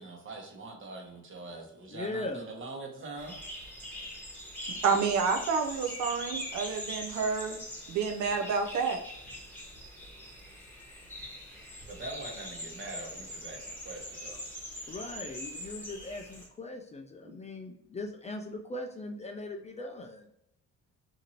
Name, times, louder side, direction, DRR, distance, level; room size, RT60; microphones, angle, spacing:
voice 1, 0.0-3.4 11.9-14.4 17.2-17.4, right 2 dB, 40° right, 2 dB, 0.9 m, -43 dB
voice 2, 1.9-2.5 14.9-20.3, left 2 dB, 25° left, 3 dB, 0.4 m, -39 dB
sound 1, 3.2-16.5, equal, 5° left, 1.1 m, -42 dB
voice 3, 4.8-7.6 7.9-9.0, right 5 dB, 70° right, 4 dB, 0.5 m, -29 dB
2.8 x 2.5 x 2.9 m, 0.75 s
cardioid pair, 90°, 30 cm